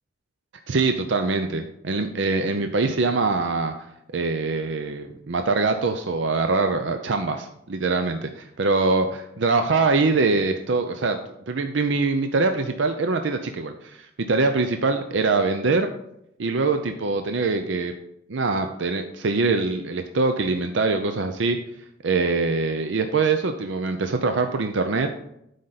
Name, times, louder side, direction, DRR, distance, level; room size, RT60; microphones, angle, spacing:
voice 1, 0.7-3.9 4.1-11.2 11.5-15.9 16.4-17.9 18.3-21.6 22.0-25.1, right 3 dB, 70° right, 7 dB, 0.6 m, -23 dB
12.0 x 5.0 x 4.0 m, 0.79 s
head